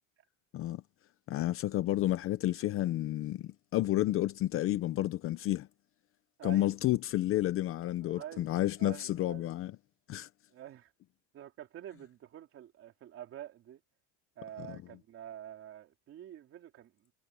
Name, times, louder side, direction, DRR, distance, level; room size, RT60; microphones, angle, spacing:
voice 1, 1.3-5.7 6.4-9.7 10.1-10.3, left 14 dB, 35° left, 0.7 m, -31 dB
voice 2, 6.4-6.7 8.0-9.5 10.5-10.9 11.3-13.8 14.3-17.1, right 11 dB, 35° right, 3.4 m, -47 dB
cardioid pair, 160°, 39 cm